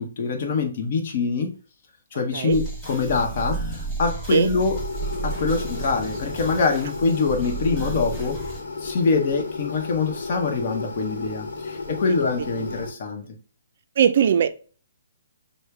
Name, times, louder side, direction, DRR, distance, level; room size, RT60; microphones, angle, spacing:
voice 1, 0.0-1.5 2.1-4.8 5.2-8.4 8.8-13.2, left 4 dB, 40° left, 2 dB, 0.9 m, -24 dB
sound 1, 2.5-8.6, right 3 dB, 10° left, 1.1 m, -32 dB
sound 2, 4.7-12.9, left 4 dB, 70° left, 1.0 m, -34 dB
voice 2, 14.0-14.5, right 8 dB, 50° right, 11 dB, 0.4 m, -19 dB
6.2 x 2.1 x 3.4 m, 0.39 s
hypercardioid pair, 170°, 0 cm